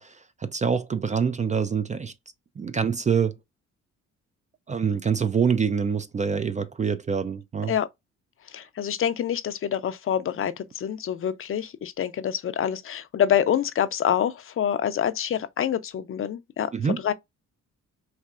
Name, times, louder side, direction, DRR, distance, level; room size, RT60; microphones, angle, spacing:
voice 1, 0.0-2.1 2.6-3.3 4.7-7.8 16.7-17.0, right 6 dB, 25° right, 0.3 m, -25 dB
voice 2, 8.5-16.7 17.0-17.1, left 9 dB, 45° left, 0.5 m, -26 dB
4.1 x 2.5 x 2.3 m
cardioid pair, 90°, 30 cm